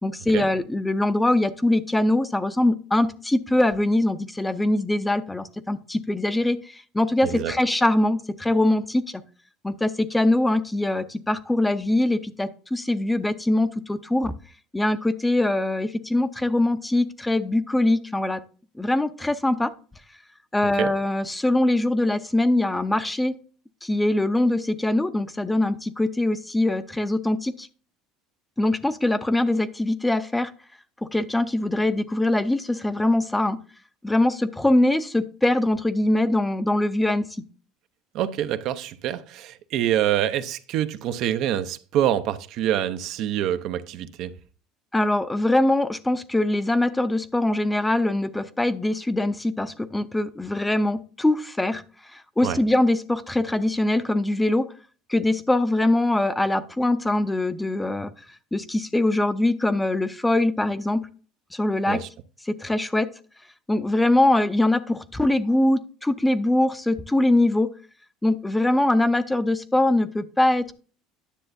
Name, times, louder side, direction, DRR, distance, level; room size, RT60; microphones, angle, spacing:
voice 1, 0.0-9.2 9.6-14.3 14.7-18.4 18.8-19.7 20.5-23.3 23.8-27.7 28.6-30.5 31.0-33.6 34.0-37.4 44.9-51.8 52.1-54.7 55.1-58.1 58.5-61.1 61.5-62.0 62.4-63.1 63.7-67.7 68.2-70.7, left 1 dB, 10° left, 0.5 m, -22 dB
voice 2, 38.1-44.3 52.4-52.6 61.9-62.1, right 11 dB, 60° right, 0.5 m, -26 dB
10.0 x 6.6 x 2.6 m
supercardioid pair, 110°, 0 cm